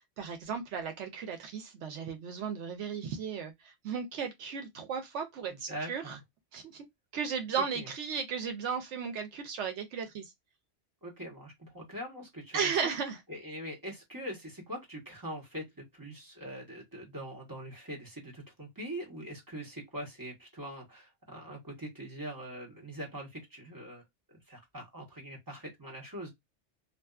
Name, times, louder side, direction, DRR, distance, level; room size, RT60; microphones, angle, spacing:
voice 1, 0.2-6.2 6.5-6.9 7.1-10.3 12.5-13.2, right 6 dB, 75° right, 0.9 m, -35 dB
voice 2, 5.5-6.2 7.6-7.9 11.0-12.9 13.3-24.0 24.3-26.3, right 1 dB, 20° right, 0.9 m, -43 dB
2.6 x 2.3 x 2.3 m
omnidirectional pair, 1.2 m